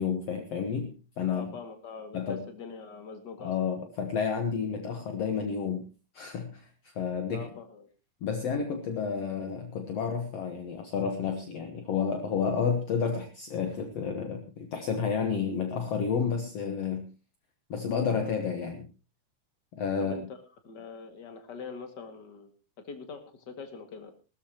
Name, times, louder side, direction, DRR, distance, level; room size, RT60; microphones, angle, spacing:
voice 1, 0.0-1.5 2.1-2.5 3.4-5.8 6.1-7.5 8.2-17.1 17.7-18.9 19.8-20.2, left 6 dB, 60° left, 6 dB, 2.2 m, -31 dB
voice 2, 1.3-3.7 7.3-7.9 20.0-20.2 20.6-22.5 22.9-24.1, left 5 dB, 35° left, 7 dB, 2.6 m, -43 dB
20.0 x 13.5 x 3.0 m, 0.31 s
omnidirectional pair, 3.5 m